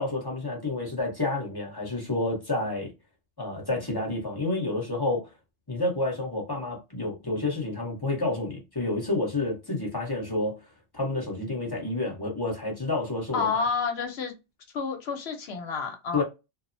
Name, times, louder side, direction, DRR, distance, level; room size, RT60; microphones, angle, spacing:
voice 1, 0.0-2.9 3.4-5.3 5.7-10.6 10.9-13.7 16.1-16.2, left 2 dB, 20° left, 0.8 m, -29 dB
voice 2, 13.3-14.3 14.7-16.2, left 5 dB, 65° left, 0.9 m, -29 dB
2.7 x 2.0 x 2.5 m
omnidirectional pair, 1.2 m